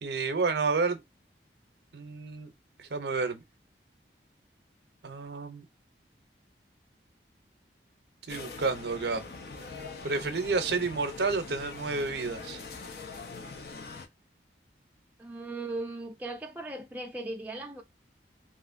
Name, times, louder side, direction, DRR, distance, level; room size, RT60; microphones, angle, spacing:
voice 1, 0.0-1.0 1.9-2.5 2.8-3.4 5.0-5.6 8.3-9.3 10.0-12.6, right 4 dB, 70° right, 0.6 m, -30 dB
sound 1, 8.3-14.1, left 4 dB, 60° left, 0.5 m, -42 dB
voice 2, 15.2-17.8, right 2 dB, 10° right, 0.4 m, -38 dB
2.9 x 2.5 x 2.4 m
head